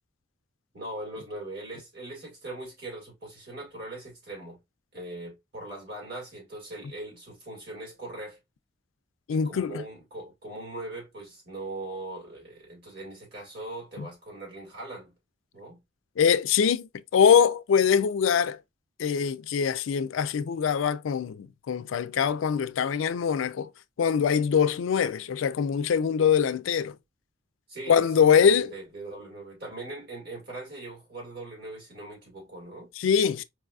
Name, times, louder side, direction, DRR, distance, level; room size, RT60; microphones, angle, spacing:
voice 1, 0.7-4.6 4.9-8.4 9.3-15.1 15.5-15.8 27.7-28.0 28.3-32.9, right 2 dB, 55° right, 2.0 m, -40 dB
voice 2, 9.3-9.8 14.0-14.1 16.2-18.6 19.0-23.7 24.0-27.0 27.9-28.7 33.0-33.4, left 7 dB, 85° left, 0.3 m, -23 dB
4.6 x 2.3 x 2.4 m
head